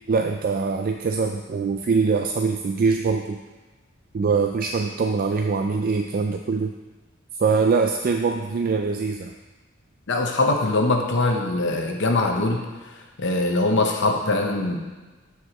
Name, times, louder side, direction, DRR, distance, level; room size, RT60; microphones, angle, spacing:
voice 1, 0.1-3.4 4.1-6.7 7.3-9.3, right 4 dB, 45° right, 4 dB, 0.3 m, -23 dB
voice 2, 10.1-12.6 13.2-14.8, left 2 dB, 60° left, 3 dB, 0.9 m, -22 dB
12.5 x 4.8 x 2.9 m, 1.2 s
head